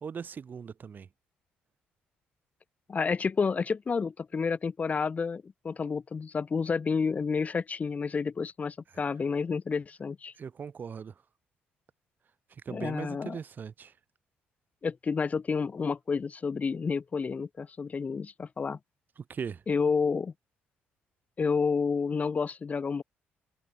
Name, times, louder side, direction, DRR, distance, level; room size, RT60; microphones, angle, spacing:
voice 1, 0.0-1.1 8.9-9.1 10.4-11.1 12.5-13.9 19.2-19.6, right 6 dB, 45° right, 0.6 m, -39 dB
voice 2, 2.9-10.3 12.7-13.4 14.8-18.8 19.7-20.3 21.4-23.0, left 5 dB, 35° left, 0.3 m, -30 dB
hypercardioid pair, 55°, 5 cm